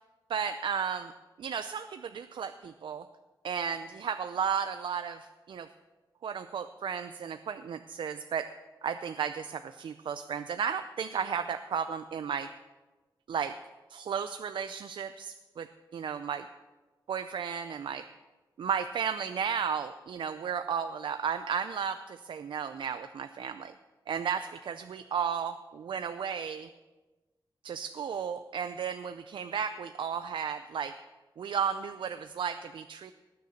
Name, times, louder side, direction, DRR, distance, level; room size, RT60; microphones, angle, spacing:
voice 1, 0.3-1.1 1.4-3.1 3.4-5.7 6.2-8.5 8.8-12.5 13.3-13.6 13.9-16.5 17.1-18.1 18.6-23.7 24.1-26.7 27.6-31.0 31.4-33.1, right 7 dB, 80° right, 10 dB, 0.5 m, -34 dB
19.5 x 6.7 x 6.5 m, 1.2 s
wide cardioid pair, 115°, 8 cm